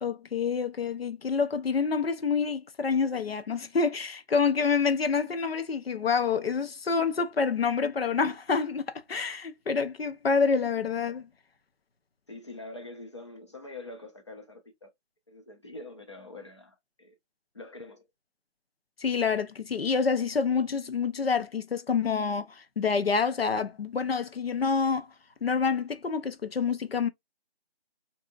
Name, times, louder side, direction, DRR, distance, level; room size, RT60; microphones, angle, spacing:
voice 1, 0.0-11.3 19.0-25.1 25.4-27.1, left 5 dB, 65° left, 0.7 m, -27 dB
voice 2, 12.3-14.9 15.3-17.2 17.5-18.0, left 2 dB, 25° left, 0.6 m, -44 dB
3.4 x 2.7 x 2.5 m
figure-of-eight pair, 160°, 33 cm